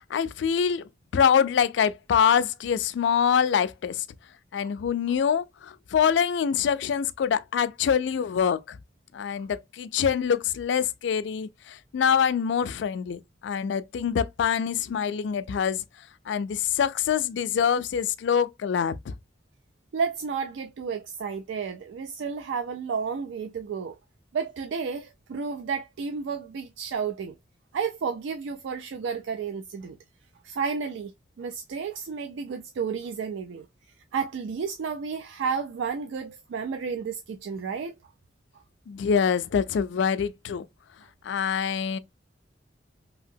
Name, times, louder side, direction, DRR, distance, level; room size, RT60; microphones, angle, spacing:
voice 1, 0.0-4.1 4.5-8.8 9.1-15.8 16.3-19.1 38.9-40.7 41.2-42.0, left 7 dB, 70° left, 0.3 m, -25 dB
voice 2, 19.9-24.0 24.3-27.4 27.7-30.0 30.4-31.1 31.4-33.7 34.1-37.9, right 6 dB, 85° right, 0.3 m, -31 dB
2.8 x 2.8 x 2.5 m
head